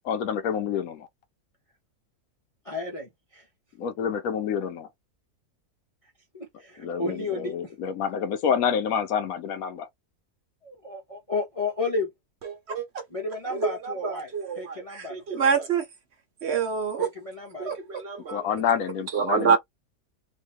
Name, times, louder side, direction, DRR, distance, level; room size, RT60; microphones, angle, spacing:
voice 1, 0.1-1.1 3.8-4.8 6.8-9.9 18.3-19.6, left 7 dB, 70° left, 1.2 m, -28 dB
voice 2, 2.6-3.4 6.3-7.9 10.6-12.1 13.1-14.3 14.6-15.2 17.0-17.7, left 3 dB, 25° left, 0.8 m, -32 dB
voice 3, 12.4-13.0 13.5-15.9 16.4-17.1 17.6-18.5 19.1-19.6, right 6 dB, 50° right, 1.0 m, -27 dB
3.0 x 2.7 x 3.1 m
omnidirectional pair, 1.6 m